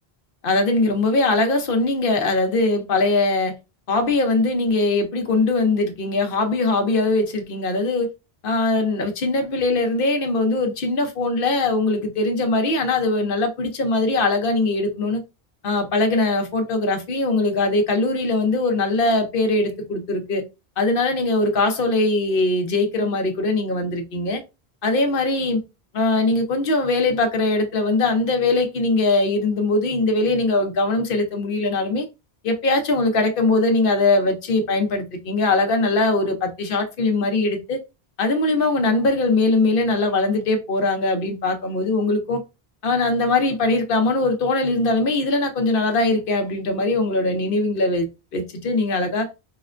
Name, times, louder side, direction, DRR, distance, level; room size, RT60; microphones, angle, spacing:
voice 1, 0.4-3.5 3.9-8.1 8.4-15.2 15.6-20.4 20.8-24.4 24.8-25.6 25.9-32.1 32.4-37.8 38.2-42.4 42.8-48.1 48.3-49.3, left 2 dB, 60° left, 0.9 m, -21 dB
4.9 x 2.1 x 2.5 m
omnidirectional pair, 1.0 m